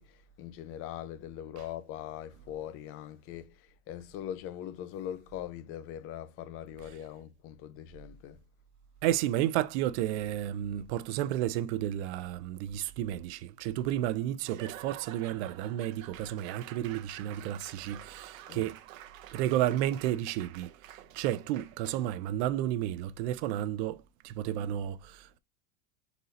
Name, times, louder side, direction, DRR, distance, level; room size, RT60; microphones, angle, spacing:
voice 1, 0.0-8.4 18.5-18.7, left 11 dB, 35° left, 0.5 m, -41 dB
voice 2, 9.0-18.8 19.3-20.7 21.1-25.4, right 12 dB, 55° right, 0.5 m, -32 dB
Laughter / Applause / Crowd, 14.4-22.2, right 12 dB, 85° right, 0.7 m, -49 dB
4.0 x 2.8 x 3.9 m
supercardioid pair, 135°, 39 cm